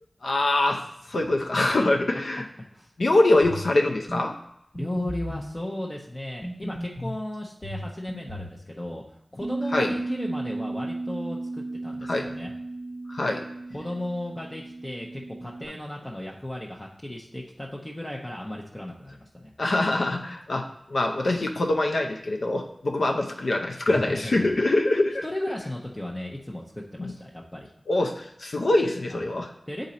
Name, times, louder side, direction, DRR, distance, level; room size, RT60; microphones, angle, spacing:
voice 1, 0.2-0.8 1.1-2.5 3.0-4.3 9.7-9.9 12.1-12.2 13.1-13.4 19.6-25.2 27.0-27.1 27.9-29.5, left 2 dB, 80° left, 2 dB, 0.6 m, -24 dB
sound 1, 3.4-3.7 4.1-4.2 4.7-5.5 6.4-7.2 7.6-8.6, equal, 45° left, 1.1 m, -35 dB
voice 2, 4.7-12.5 13.7-19.5 23.9-24.5 25.2-27.7 29.1-29.2 29.7-29.9, left 1 dB, 20° left, -2 dB, 0.6 m, -35 dB
Bass guitar, 9.4-15.7, right 2 dB, 45° right, 0.4 m, -34 dB
7.1 x 3.9 x 4.1 m, 0.76 s
wide cardioid pair, 75°, 0 cm